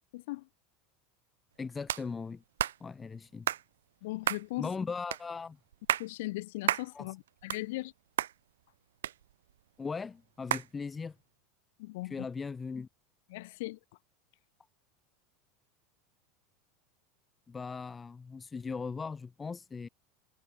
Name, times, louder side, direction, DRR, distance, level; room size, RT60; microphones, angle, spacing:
voice 1, 0.1-0.5 4.0-4.7 6.0-7.9 11.8-12.3 13.3-13.8, left 20 dB, 75° left, 7.4 m, -38 dB
voice 2, 1.6-2.4 2.8-3.5 4.6-5.6 6.9-7.1 9.8-11.2 12.1-12.9 17.5-19.9, left 5 dB, 20° left, 1.9 m, -38 dB
sound 1, 1.9-2.0 2.6-2.8 3.5-3.6 4.2-4.5 5.1-5.2 5.7-6.1 6.7-6.9 7.3-7.9 8.2-8.3 9.0-9.6 10.5-10.7, right 11 dB, 85° right, 1.4 m, -31 dB
hypercardioid pair, 95°, 0 cm